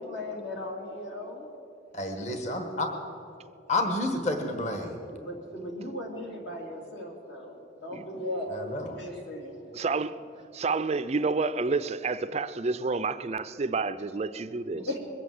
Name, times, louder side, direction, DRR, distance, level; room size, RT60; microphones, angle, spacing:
voice 1, 0.0-1.5 5.1-9.7 14.7-15.0, left 1 dB, 75° left, 3.0 m, -37 dB
voice 2, 1.9-2.9 3.7-5.0 8.6-8.9, left 2 dB, 40° left, 1.3 m, -29 dB
voice 3, 9.7-10.2 10.5-14.9, right 4 dB, 35° right, 0.4 m, -29 dB
21.0 x 8.3 x 7.7 m
head